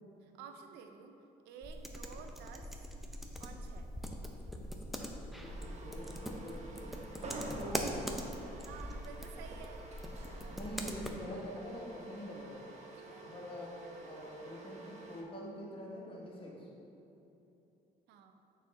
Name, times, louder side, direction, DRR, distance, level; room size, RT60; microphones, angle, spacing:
voice 1, 0.2-1.2 1.4-2.7 3.4-3.9 8.6-9.9 12.9-13.3 18.1-18.3, right 6 dB, 85° right, 5 dB, 0.5 m, -52 dB
sound 1, 1.6-11.1, equal, ahead, 0.4 m, -42 dB
voice 2, 5.3-7.0 7.5-8.0 10.5-12.6 13.2-16.7, equal, 30° left, -3 dB, 1.2 m, -45 dB
sound 2, 5.4-15.2, right 2 dB, 40° right, 0.8 m, -49 dB
6.3 x 4.2 x 3.7 m, 2.9 s
cardioid pair, 110°, 17 cm